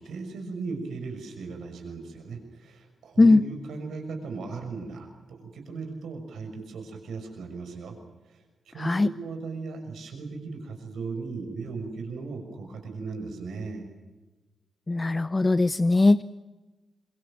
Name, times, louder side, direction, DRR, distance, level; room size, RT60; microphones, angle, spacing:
voice 1, 0.0-7.9 8.3-13.9, right 4 dB, 80° right, 4 dB, 6.2 m, -37 dB
voice 2, 8.8-9.1 14.9-16.2, left 2 dB, 30° left, 15 dB, 0.7 m, -20 dB
26.5 x 23.0 x 7.4 m, 1.2 s
supercardioid pair, 50°, 0 cm